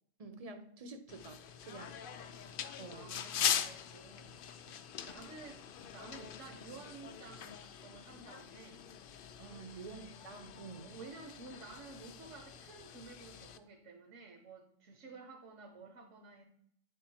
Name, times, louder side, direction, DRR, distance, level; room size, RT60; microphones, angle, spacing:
voice 1, 0.2-2.0 2.8-3.1 4.6-4.8 9.4-11.0, right 3 dB, 40° right, 8 dB, 0.6 m, -49 dB
sound 1, 1.1-13.6, left 9 dB, 65° left, 0.5 m, -42 dB
voice 2, 2.2-2.6 2.9-4.3 5.0-5.7 5.9-8.9 9.9-10.1 10.8-16.4, right 4 dB, 70° right, 4 dB, 1.2 m, -52 dB
9.5 x 3.8 x 4.2 m, 0.66 s
omnidirectional pair, 1.4 m